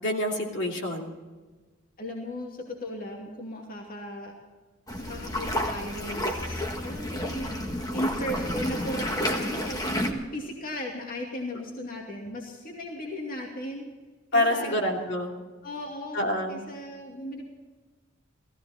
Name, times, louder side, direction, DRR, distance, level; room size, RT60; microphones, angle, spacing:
voice 1, 0.0-1.1 14.3-15.4 16.1-16.6, left 1 dB, 60° left, 0 dB, 2.8 m, -27 dB
voice 2, 2.0-4.3 5.0-7.5 7.9-13.9 14.3-14.8 15.6-17.5, equal, 40° left, -1 dB, 2.5 m, -36 dB
sound 1, 4.9-10.1, left 1 dB, 20° left, 1.7 m, -30 dB
18.0 x 15.5 x 4.3 m, 1.3 s
head